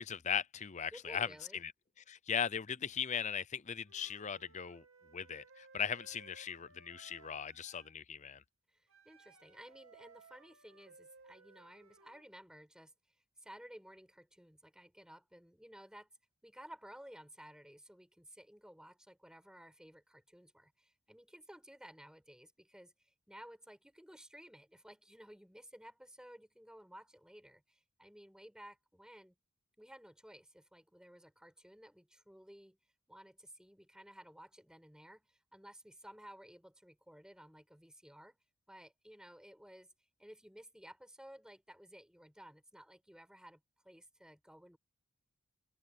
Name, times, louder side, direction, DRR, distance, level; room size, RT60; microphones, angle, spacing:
voice 1, 0.0-1.7 2.1-4.8 5.1-8.4, left 7 dB, 35° left, 0.6 m, -38 dB
voice 2, 0.9-1.6 8.7-16.1 16.4-29.3 29.8-32.8 33.1-38.4 38.7-39.9 40.2-44.8, equal, 5° right, 6.0 m, -56 dB
Wind instrument woodwind instrument, 3.9-7.9 8.9-12.3, right 4 dB, 75° right, 2.4 m, -61 dB
head